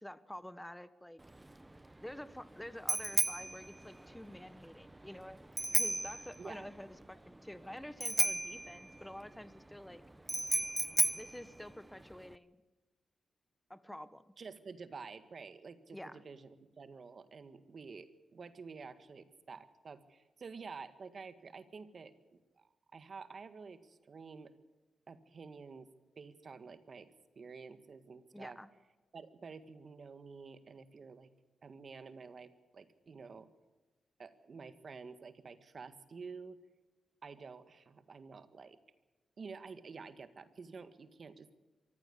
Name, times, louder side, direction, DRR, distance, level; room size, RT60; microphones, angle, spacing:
voice 1, 0.0-1.2 2.0-5.4 5.8-10.0 11.1-12.6 13.7-14.3 15.9-16.2 28.3-28.7, left 1 dB, 5° left, 14 dB, 1.2 m, -48 dB
Bicycle bell, 1.2-12.4, right 1 dB, 15° right, 0.9 m, -36 dB
voice 2, 6.4-6.7 14.4-24.5 25.1-25.9 26.2-28.6 29.1-31.3 31.6-33.5 34.2-36.6 37.2-38.8 39.4-41.5, right 5 dB, 50° right, 11 dB, 1.8 m, -50 dB
24.0 x 15.0 x 8.5 m, 1.2 s
cardioid pair, 90°, 0 cm